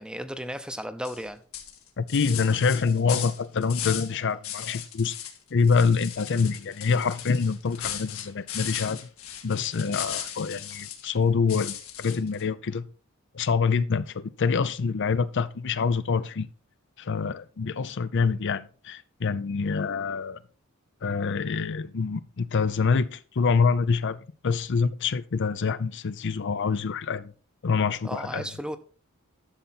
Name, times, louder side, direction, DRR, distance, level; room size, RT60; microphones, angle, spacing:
voice 1, 0.0-1.4 9.4-9.6 17.6-17.8 28.0-28.8, equal, 5° right, 0.7 m, -35 dB
sound 1, 1.0-1.2 1.5-4.1 4.4-5.4 5.6-11.1 11.5-12.4, left 10 dB, 80° left, 1.7 m, -37 dB
voice 2, 2.0-5.2 5.5-9.0 9.4-12.9 13.3-16.5 17.0-20.4 21.0-27.3 27.6-28.5, left 5 dB, 60° left, 0.5 m, -26 dB
11.5 x 7.0 x 4.1 m
head